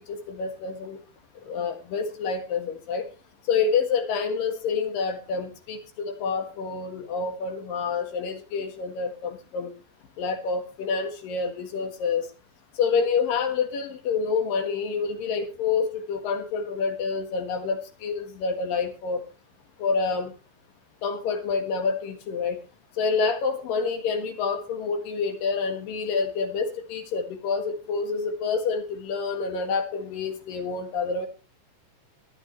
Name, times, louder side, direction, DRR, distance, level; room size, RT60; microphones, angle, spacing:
voice 1, 0.1-1.0 1.4-3.0 3.5-5.8 6.1-9.7 10.2-12.3 12.8-19.2 19.8-20.3 21.0-22.6 23.0-31.3, left 5 dB, 60° left, 6 dB, 2.4 m, -28 dB
22.5 x 9.1 x 3.2 m, 0.30 s
omnidirectional pair, 6.0 m